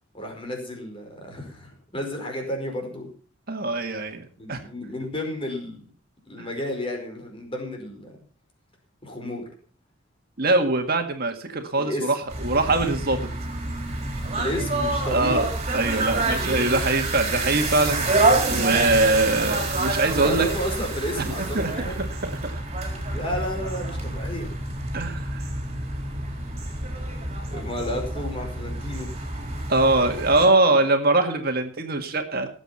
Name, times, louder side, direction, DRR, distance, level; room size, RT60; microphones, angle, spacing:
voice 1, 0.1-3.1 4.4-5.8 6.3-8.2 9.0-9.4 11.8-12.0 14.4-15.5 16.6-16.8 20.2-22.0 23.1-24.5 27.5-29.1 30.4-30.5, left 1 dB, 25° left, 2 dB, 4.9 m, -32 dB
voice 2, 3.5-4.7 6.4-6.5 10.4-13.3 15.1-15.4 15.7-20.5 21.2-22.5 24.9-25.5 29.7-32.5, right 2 dB, 50° right, 5 dB, 1.9 m, -23 dB
sound 1, 12.3-30.5, right 2 dB, 35° right, 4.2 m, -27 dB
18.5 x 8.3 x 5.6 m, 0.41 s
head